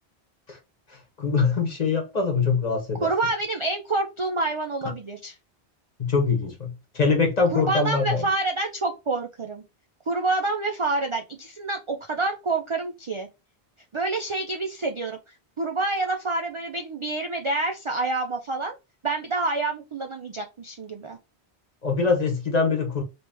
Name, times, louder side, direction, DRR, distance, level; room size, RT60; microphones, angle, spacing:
voice 1, 0.9-3.1 6.0-8.2 21.8-23.0, left 4 dB, 40° left, 1.0 m, -23 dB
voice 2, 3.0-5.3 7.5-9.6 10.1-13.3 13.9-18.8 19.0-21.2, right 3 dB, 45° right, 0.4 m, -27 dB
3.1 x 3.0 x 3.3 m
omnidirectional pair, 1.1 m